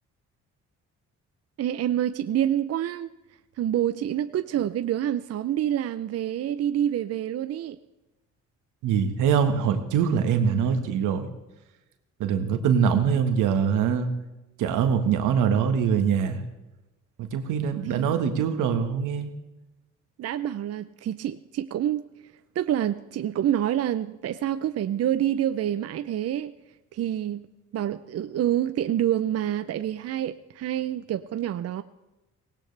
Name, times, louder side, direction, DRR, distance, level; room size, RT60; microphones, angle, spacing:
voice 1, 1.6-3.1 3.6-7.8 17.9-18.1 20.2-22.0 22.6-26.5 26.9-27.5 27.7-31.8, right 11 dB, 55° right, 12 dB, 0.6 m, -27 dB
voice 2, 8.8-11.3 12.2-14.1 14.6-16.4 17.2-19.3, right 7 dB, 90° right, 7 dB, 1.5 m, -23 dB
18.5 x 17.5 x 3.3 m, 1.0 s
cardioid pair, 90°, 30 cm